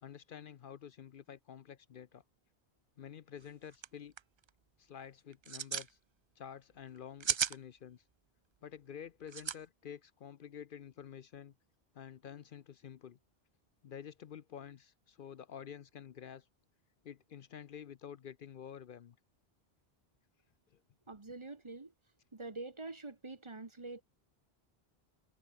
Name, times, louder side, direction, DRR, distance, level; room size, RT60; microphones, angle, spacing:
voice 1, 0.0-2.2 3.0-4.1 4.8-6.0 6.4-8.0 8.6-11.5 11.9-13.2 13.8-16.5 17.0-19.2 20.7-20.8, left 8 dB, 60° left, 0.8 m, -49 dB
sound 1, 3.4-3.5 3.7-3.9 4.2-4.5 5.3-5.9 7.0-7.6 9.3-9.6, right 7 dB, 45° right, 0.3 m, -34 dB
voice 2, 21.1-21.9 22.3-24.0, right 3 dB, 30° right, 1.2 m, -45 dB
omnidirectional pair, 1.1 m